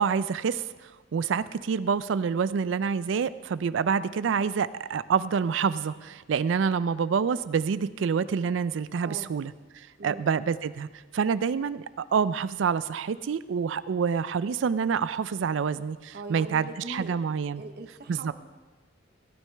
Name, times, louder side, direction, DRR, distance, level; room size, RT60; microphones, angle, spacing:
voice 1, 0.0-17.6 18.1-18.3, right 6 dB, 85° right, 16 dB, 0.4 m, -27 dB
voice 2, 9.0-9.3 10.0-10.2 16.1-17.2 17.6-18.3, right 2 dB, 55° right, 6 dB, 0.8 m, -41 dB
16.0 x 9.2 x 3.3 m, 1.3 s
head